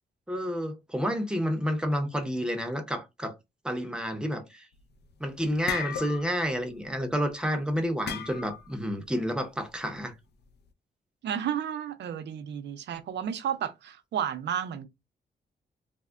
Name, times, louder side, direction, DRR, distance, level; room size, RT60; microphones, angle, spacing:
voice 1, 0.3-3.3 3.6-4.7 5.2-10.1, equal, 5° right, 0.6 m, -30 dB
sound 1, 4.8-5.1 5.4-6.5 6.8-7.0 8.1-8.8, left 8 dB, 70° left, 0.4 m, -35 dB
voice 2, 11.2-14.9, right 9 dB, 85° right, 0.5 m, -32 dB
3.3 x 2.1 x 2.4 m
wide cardioid pair, 135°, 18 cm